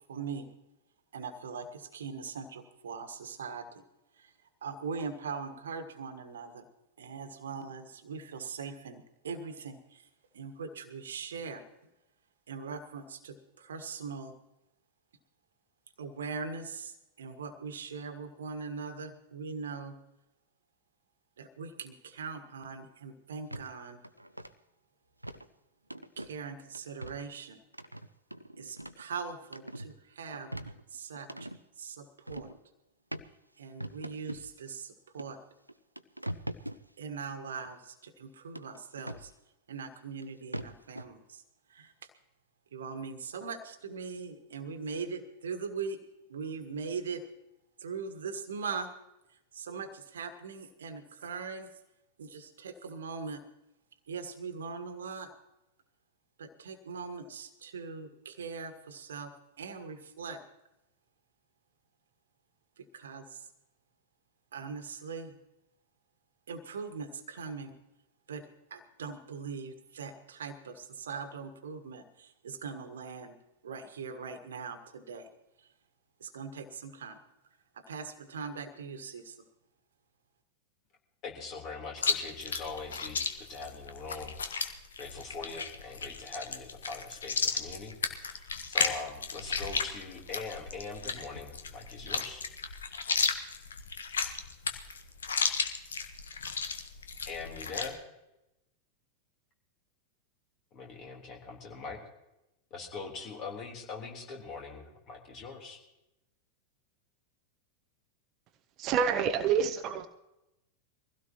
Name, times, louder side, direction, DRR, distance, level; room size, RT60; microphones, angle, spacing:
voice 1, 0.1-0.5 1.1-3.8 4.2-4.3 4.6-6.6 7.0-10.1 10.3-11.6 12.5-14.3 16.0-19.9 21.4-24.0 26.2-27.6 28.6-31.5 31.8-32.5 33.6-35.4 37.0-39.3 39.7-41.4 41.7-41.9 42.7-46.0 46.3-47.2 47.8-48.9 49.5-51.7 52.2-53.4 54.1-55.3 56.4-60.4 62.8-63.5 64.5-65.3 66.5-67.7 68.3-73.3 73.6-75.3 75.6-75.7 76.2-77.2 77.7-79.3, right 5 dB, 65° right, 9 dB, 1.6 m, -41 dB
sound 1, 23.5-23.7 24.0-24.5 25.2-25.5 25.9-26.4 26.7-27.3 27.7-29.1 29.4-29.9 30.3-31.6 32.3-32.6 33.1-33.3 33.8-34.5 35.2-35.3 35.7-36.8 38.6-39.3 40.2-40.3 40.5-41.1, right 1 dB, 85° right, 0.6 m, -41 dB
voice 2, 81.2-83.2 83.5-87.9 88.2-88.4 88.7-92.4 97.3-98.0 100.7-102.0 102.7-105.8, left 4 dB, 35° left, 1 dB, 3.7 m, -42 dB
Chewing mastication, 82.0-97.9, left 5 dB, 70° left, 1.2 m, -34 dB
voice 3, 108.8-110.1, right 7 dB, 35° right, 9 dB, 0.8 m, -27 dB
23.0 x 16.0 x 3.0 m, 0.93 s
figure-of-eight pair, 90°, 0 cm